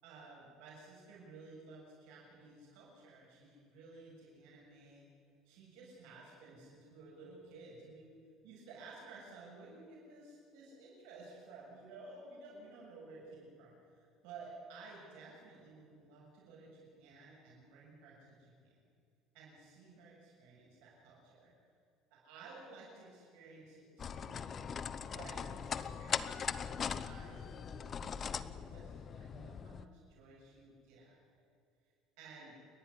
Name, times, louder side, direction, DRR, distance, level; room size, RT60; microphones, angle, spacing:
voice 1, 0.0-5.0 5.4-8.1 8.4-18.7 19.3-21.5 22.1-31.4 32.2-32.6, right 3 dB, 90° right, -4 dB, 6.9 m, -55 dB
sound 1, 24.0-29.8, left 7 dB, 30° left, 0.7 m, -40 dB
29.5 x 11.5 x 9.9 m, 2.3 s
cardioid pair, 150°, 0 cm